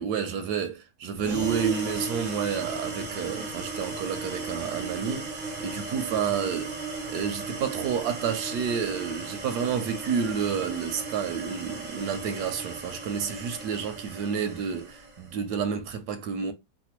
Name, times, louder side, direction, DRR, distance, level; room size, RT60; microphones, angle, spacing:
voice 1, 0.0-5.3 5.6-6.7 7.1-16.5, right 7 dB, 80° right, 1.2 m, -30 dB
sound 1, 1.2-15.1, right 3 dB, 40° right, 0.6 m, -36 dB
4.0 x 2.2 x 2.9 m
omnidirectional pair, 1.8 m